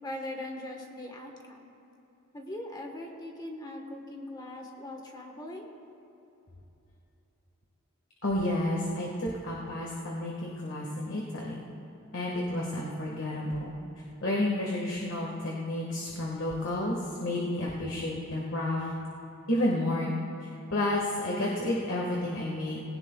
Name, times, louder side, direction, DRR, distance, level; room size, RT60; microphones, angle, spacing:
voice 1, 0.0-1.7 2.3-5.7, left 1 dB, 20° left, 1 dB, 1.3 m, -40 dB
voice 2, 8.2-11.6 12.1-13.7 14.2-18.9 19.5-20.1 20.7-22.8, left 1 dB, 60° left, -3 dB, 1.6 m, -31 dB
20.0 x 17.5 x 2.3 m, 2.9 s
head